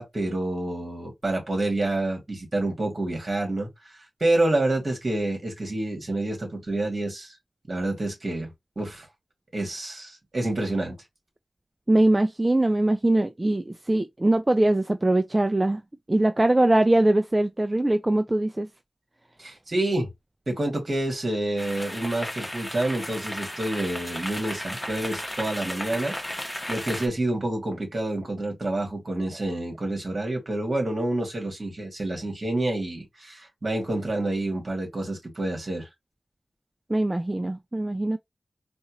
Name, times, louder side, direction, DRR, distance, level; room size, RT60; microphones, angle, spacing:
voice 1, 0.0-3.7 4.2-7.4 7.7-9.1 9.5-11.0 19.4-20.1 20.5-26.2 26.7-35.9, right 2 dB, 50° right, 2.3 m, -28 dB
voice 2, 11.9-15.8 16.1-18.7 36.9-38.2, right 1 dB, 25° right, 0.4 m, -22 dB
sound 1, 21.6-27.1, left 1 dB, 10° left, 1.0 m, -34 dB
4.3 x 2.4 x 3.0 m
wide cardioid pair, 60°, 0 cm